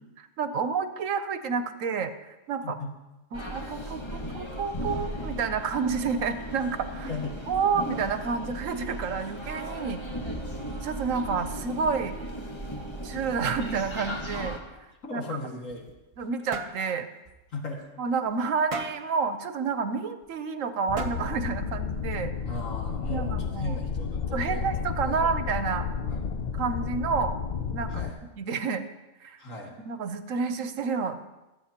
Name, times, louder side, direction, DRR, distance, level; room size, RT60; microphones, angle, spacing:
voice 1, 0.4-2.8 3.3-7.1 7.5-10.0 10.8-12.2 13.0-14.6 15.1-15.2 16.2-17.1 18.0-22.3 23.1-23.8 24.3-25.9 26.6-27.4 27.7-28.0 28.4-28.8 29.2-29.4 29.8-31.3, right 5 dB, 80° right, 10 dB, 1.2 m, -29 dB
sound 1, 3.3-14.6, equal, 20° left, 1.3 m, -36 dB
voice 2, 6.9-7.4 15.1-15.9 17.5-17.8 22.4-25.2 26.1-26.2 27.9-28.2 29.4-29.7, left 3 dB, 80° left, -1 dB, 2.4 m, -37 dB
sound 2, 15.5-16.3 16.5-16.8 17.3-17.4 17.8-17.9 18.7-19.1 20.2-20.3 21.0-21.4, right 4 dB, 30° right, 0.7 m, -35 dB
sound 3, 20.9-28.1, left 6 dB, 55° left, 0.5 m, -32 dB
25.0 x 8.6 x 2.9 m, 1.0 s
omnidirectional pair, 1.4 m